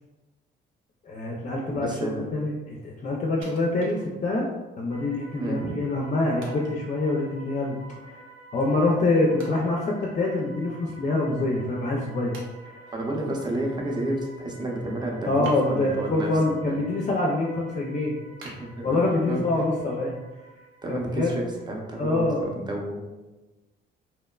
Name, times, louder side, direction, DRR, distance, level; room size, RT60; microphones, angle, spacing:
voice 1, 1.1-4.5 4.8-7.8 8.0-8.2 8.5-12.4 12.6-12.8 15.3-18.2 18.8-20.2 20.9-21.3 22.0-22.4, left 2 dB, 40° left, -2 dB, 0.4 m, -25 dB
voice 2, 1.8-2.3 5.4-5.8 12.9-16.3 16.7-16.8 18.4-18.9 19.3-19.4 20.8-23.0, right 1 dB, 20° right, 0 dB, 0.6 m, -30 dB
Wood, 3.4-4.5 5.0-5.1 6.4-6.8 9.4-10.5 10.9-11.0 11.6-11.7 12.3-13.0 15.4-16.2 16.6-17.1 17.5-17.6 18.4-19.4 19.9-20.0, right 2 dB, 85° right, 0.6 m, -47 dB
sound 1, 4.9-22.2, right 3 dB, 50° right, 0.8 m, -49 dB
2.9 x 2.1 x 2.3 m, 1.1 s
cardioid pair, 90°, 20 cm